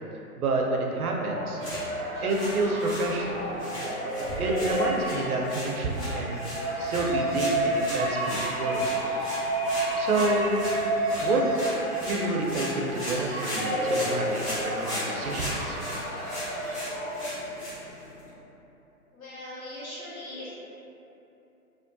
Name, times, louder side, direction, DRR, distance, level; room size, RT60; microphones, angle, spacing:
voice 1, 0.4-1.6 2.2-3.4 4.4-6.4 6.8-8.9 10.0-10.5 11.2-11.4 12.0-16.0, right 2 dB, 70° right, 0 dB, 0.6 m, -29 dB
sound 1, 0.9-17.7, right 1 dB, 20° right, 0.7 m, -31 dB
sound 2, 1.5-18.3, equal, 20° left, 0.8 m, -37 dB
voice 2, 19.1-20.5, left 1 dB, 65° left, -8 dB, 0.7 m, -40 dB
2.9 x 2.0 x 2.5 m, 2.9 s
figure-of-eight pair, 125°, 45 cm